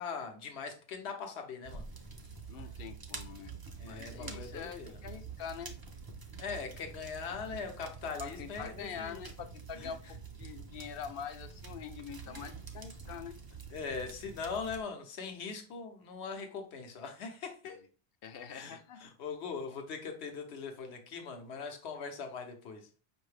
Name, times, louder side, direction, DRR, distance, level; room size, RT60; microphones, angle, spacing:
voice 1, 0.0-1.9 3.8-5.0 6.4-9.2 9.7-9.9 12.3-12.4 13.7-17.8 18.5-22.9, left 5 dB, 80° left, 1.1 m, -41 dB
sound 1, 1.6-14.8, right 5 dB, 30° right, 0.4 m, -47 dB
voice 2, 2.5-3.5 3.8-5.8 8.2-13.4 18.2-19.0, left 7 dB, 65° left, 0.7 m, -44 dB
5.4 x 2.6 x 3.2 m
omnidirectional pair, 1.1 m